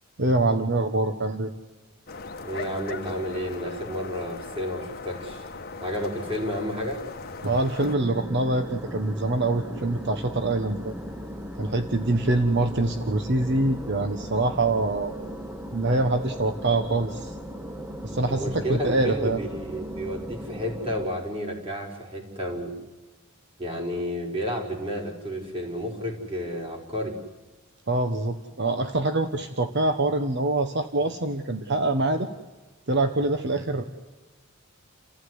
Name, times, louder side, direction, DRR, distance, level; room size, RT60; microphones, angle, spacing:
voice 1, 0.2-1.5 7.4-10.9 11.6-15.1 15.7-17.4 18.0-19.4 27.9-32.3 32.9-33.8, right 2 dB, 60° right, 7 dB, 1.3 m, -25 dB
sound 1, 2.1-8.0, left 3 dB, 50° left, 1.6 m, -39 dB
voice 2, 2.4-5.5 5.8-7.0 18.3-22.7 23.6-27.2, equal, 30° right, 0 dB, 5.7 m, -31 dB
sound 2, 7.8-21.1, equal, 10° right, 1.3 m, -38 dB
29.5 x 15.5 x 9.7 m, 1.2 s
head